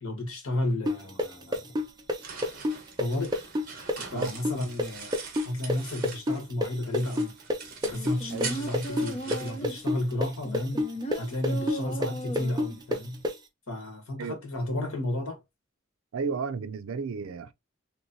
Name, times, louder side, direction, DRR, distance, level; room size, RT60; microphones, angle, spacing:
voice 1, 0.0-1.7 3.0-3.3 4.1-5.2 5.4-7.3 7.8-10.8 11.2-13.2 13.7-15.4, left 1 dB, 85° left, 1.5 m, -32 dB
sound 1, 0.9-8.5 8.7-13.3, left 1 dB, 20° right, 0.5 m, -28 dB
sound 2, 1.8-6.5 6.9-10.4, right 5 dB, 45° right, 1.0 m, -42 dB
sound 3, 7.9-9.9 10.4-12.8 13.2-13.3, right 1 dB, 30° left, 0.6 m, -36 dB
voice 2, 16.1-17.5, right 5 dB, 80° right, 0.4 m, -33 dB
3.1 x 3.0 x 2.6 m
head